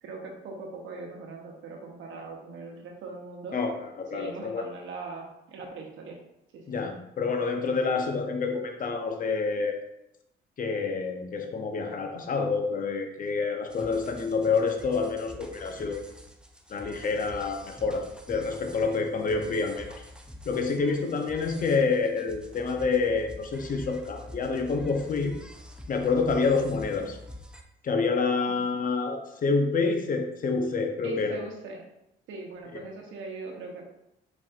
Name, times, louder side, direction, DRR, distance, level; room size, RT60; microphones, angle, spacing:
voice 1, 0.0-3.6 4.1-6.2 6.5-6.8 28.5-28.6 31.0-31.8 32.3-33.9, right 3 dB, 80° right, 1 dB, 1.0 m, -40 dB
voice 2, 4.0-4.6 6.7-9.8 10.6-16.0 16.7-20.0 20.4-25.3 25.9-27.2 27.8-31.4 32.7-32.8, left 4 dB, 45° left, 4 dB, 0.7 m, -28 dB
sound 1, 13.7-27.6, left 1 dB, 5° right, 0.5 m, -46 dB
4.4 x 4.3 x 2.4 m, 0.85 s
cardioid pair, 90°, 20 cm